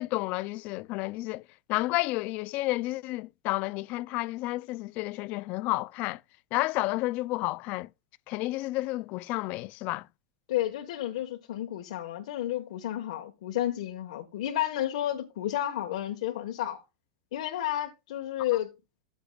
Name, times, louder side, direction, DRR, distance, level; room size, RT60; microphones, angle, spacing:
voice 1, 0.0-1.4 1.7-6.2 6.5-7.9 8.3-10.1, left 20 dB, 40° left, 0.4 m, -31 dB
voice 2, 10.5-16.8 17.3-18.7, left 12 dB, 70° left, 1.4 m, -31 dB
15.0 x 7.1 x 2.4 m
supercardioid pair, 150°, 4 cm